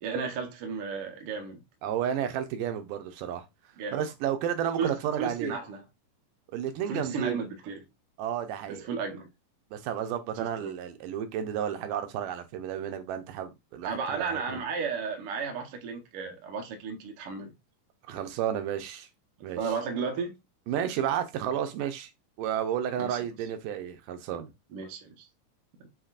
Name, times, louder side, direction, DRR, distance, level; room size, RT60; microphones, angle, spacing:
voice 1, 0.0-1.6 3.8-4.0 4.8-5.8 6.9-7.8 8.7-9.3 10.4-10.7 13.8-17.5 19.6-20.3 23.0-23.2 24.7-25.3, right 5 dB, 65° right, 1.4 m, -34 dB
voice 2, 1.8-3.5 3.9-5.6 6.5-7.4 8.2-8.8 9.7-14.6 18.1-19.1 19.4-19.6 20.7-22.1 22.4-24.5, right 9 dB, 85° right, 2.3 m, -32 dB
7.3 x 2.9 x 2.4 m
omnidirectional pair, 3.7 m